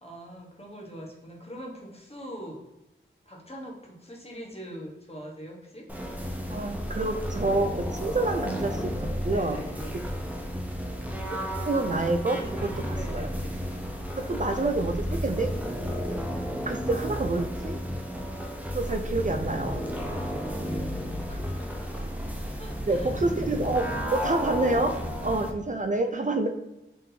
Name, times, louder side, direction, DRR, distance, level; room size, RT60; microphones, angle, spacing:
voice 1, 0.0-2.6 3.2-5.9 9.3-10.3 12.6-13.7 14.2-15.2 20.5-20.9 21.3-21.7 22.6-23.1, equal, 30° left, -1 dB, 1.2 m, -43 dB
sound 1, 5.9-25.5, equal, 5° right, 0.7 m, -32 dB
voice 2, 6.5-9.6 11.6-12.7 13.1-13.3 14.2-15.5 16.7-17.8 18.7-19.8 22.9-23.8 24.1-24.9 25.2-26.5, right 2 dB, 40° right, 5 dB, 0.4 m, -27 dB
3.8 x 3.7 x 2.8 m, 0.95 s
wide cardioid pair, 75°, 21 cm